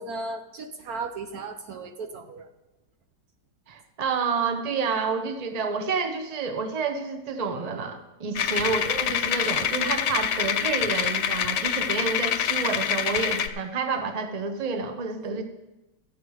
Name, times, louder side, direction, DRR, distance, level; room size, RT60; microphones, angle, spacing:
voice 1, 0.0-2.5 8.2-8.4 15.2-15.4, right 3 dB, 65° right, 6 dB, 1.1 m, -36 dB
voice 2, 3.7-15.4, right 4 dB, 30° right, 6 dB, 0.8 m, -29 dB
sound 1, 8.4-13.5, left 9 dB, 80° left, 1.3 m, -26 dB
13.5 x 8.9 x 4.8 m, 1.0 s
omnidirectional pair, 1.8 m